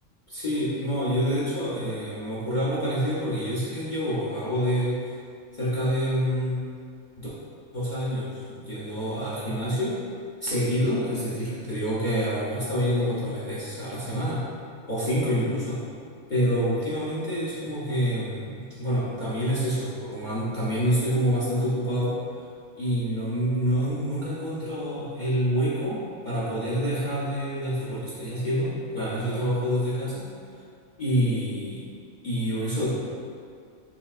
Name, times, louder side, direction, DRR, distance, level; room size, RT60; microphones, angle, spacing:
voice 1, 0.3-5.0 5.6-6.6 7.2-7.3 7.7-9.9 10.4-14.4 14.9-15.8 16.3-22.1 22.8-30.3 31.0-31.8 32.2-33.0, equal, 45° left, -9 dB, 0.7 m, -27 dB
4.7 x 3.3 x 2.4 m, 2.3 s
omnidirectional pair, 1.4 m